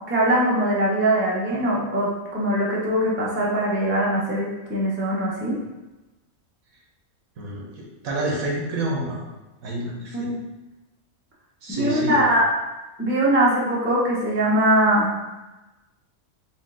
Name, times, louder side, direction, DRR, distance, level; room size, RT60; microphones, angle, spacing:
voice 1, 0.1-5.6 10.1-10.4 11.7-12.5 13.0-15.2, right 1 dB, 15° right, -5 dB, 0.4 m, -21 dB
voice 2, 7.4-9.2 9.6-10.3 11.6-12.2, right 1 dB, 80° right, -2 dB, 1.3 m, -28 dB
4.3 x 2.4 x 3.6 m, 1.1 s
omnidirectional pair, 1.5 m